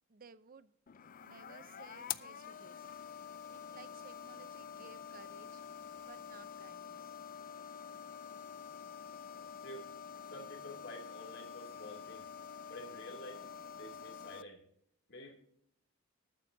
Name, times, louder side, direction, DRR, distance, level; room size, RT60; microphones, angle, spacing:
voice 1, 0.1-0.7 1.2-2.9 3.5-5.6 6.0-7.2, right 5 dB, 45° right, 14 dB, 0.6 m, -58 dB
sound 1, 0.9-14.4, left 8 dB, 45° left, 0.4 m, -47 dB
voice 2, 9.6-9.9 10.3-12.3 12.7-13.5 13.7-14.6 15.1-15.3, left 1 dB, 60° left, 2 dB, 2.8 m, -49 dB
20.0 x 9.1 x 2.7 m, 0.70 s
head